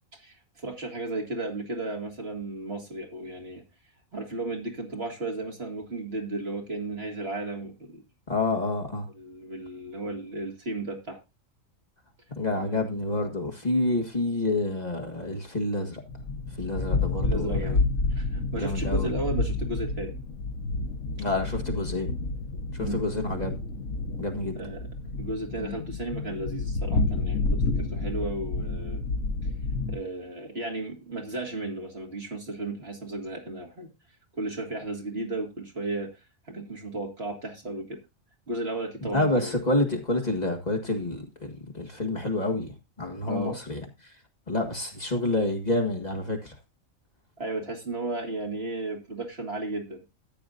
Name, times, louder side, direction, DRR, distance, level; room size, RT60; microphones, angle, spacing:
voice 1, 0.1-3.6 4.1-8.0 9.1-11.2 12.6-12.9 17.2-17.9 18.1-20.2 22.8-23.0 24.5-29.0 29.9-33.9 34.3-38.0 38.5-39.6 43.3-43.6 47.4-50.0, right 2 dB, 50° right, 2.5 m, -34 dB
voice 2, 8.3-9.1 12.4-16.0 16.6-17.5 18.6-19.1 21.2-22.1 22.7-23.6 24.2-24.6 39.1-43.8 44.5-46.5, left 2 dB, 30° left, 1.8 m, -28 dB
sound 1, 16.1-30.0, left 3 dB, 75° left, 1.3 m, -29 dB
14.0 x 9.3 x 2.5 m
omnidirectional pair, 1.4 m